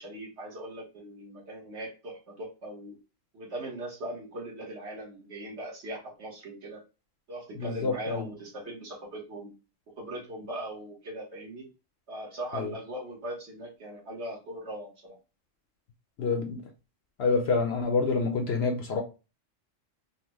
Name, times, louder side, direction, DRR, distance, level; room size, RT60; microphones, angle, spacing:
voice 1, 0.0-3.0 3.3-6.8 7.3-9.5 10.0-11.7 12.1-15.2, right 1 dB, 60° right, 1.4 m, -40 dB
voice 2, 7.6-8.2 12.5-12.7 16.2-16.6 17.2-19.0, left 4 dB, 60° left, 0.7 m, -27 dB
4.1 x 2.1 x 3.0 m
omnidirectional pair, 1.3 m